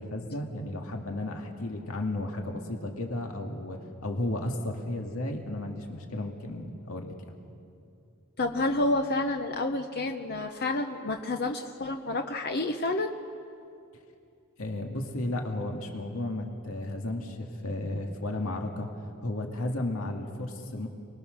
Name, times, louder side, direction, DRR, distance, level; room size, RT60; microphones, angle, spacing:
voice 1, 0.0-7.3 14.6-18.9 19.2-20.9, left 1 dB, 75° left, 2 dB, 2.2 m, -33 dB
voice 2, 8.4-13.1, left 2 dB, 50° left, 5 dB, 0.9 m, -29 dB
29.0 x 21.5 x 6.6 m, 2.5 s
head